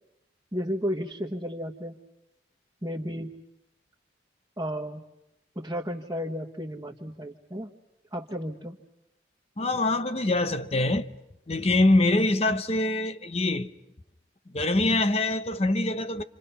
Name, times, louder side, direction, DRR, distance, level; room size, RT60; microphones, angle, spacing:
voice 1, 0.5-2.0 2.8-3.3 4.6-5.0 5.5-7.7 8.1-8.8, equal, 15° right, 1.4 m, -33 dB
voice 2, 9.6-11.1 11.5-13.7 14.5-16.2, left 2 dB, 35° left, 0.9 m, -24 dB
29.0 x 27.5 x 5.7 m
head